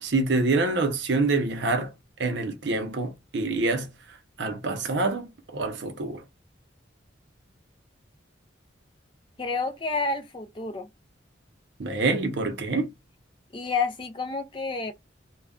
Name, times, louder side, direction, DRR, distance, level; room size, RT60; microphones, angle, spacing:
voice 1, 0.0-1.9 2.2-3.9 4.4-5.3 5.5-6.2 11.8-12.9, right 3 dB, 65° right, 0.6 m, -26 dB
voice 2, 9.4-10.9 13.5-14.9, left 4 dB, 25° left, 0.4 m, -29 dB
2.2 x 2.2 x 3.6 m
head